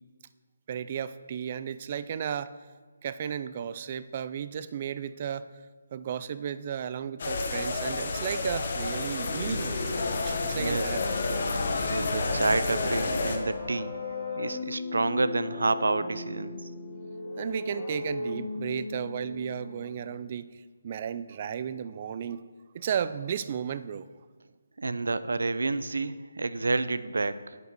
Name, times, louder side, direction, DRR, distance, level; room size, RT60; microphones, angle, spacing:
voice 1, 0.7-2.5 3.0-5.5 5.9-9.8 10.3-11.0 17.4-22.4 22.7-24.1, right 8 dB, 20° right, 14 dB, 0.3 m, -34 dB
sound 1, 7.2-13.4, left 3 dB, 35° left, 1.1 m, -30 dB
voice 2, 10.6-10.9 11.9-14.0 14.4-16.7 24.8-27.6, right 3 dB, 90° right, 14 dB, 0.6 m, -29 dB
Wind instrument woodwind instrument, 10.8-14.7, left 2 dB, 85° left, 1.6 m, -40 dB
sound 2, 12.5-20.3, left 3 dB, 10° left, 1.2 m, -38 dB
9.5 x 8.2 x 6.1 m, 1.4 s
hypercardioid pair, 180°, 0 cm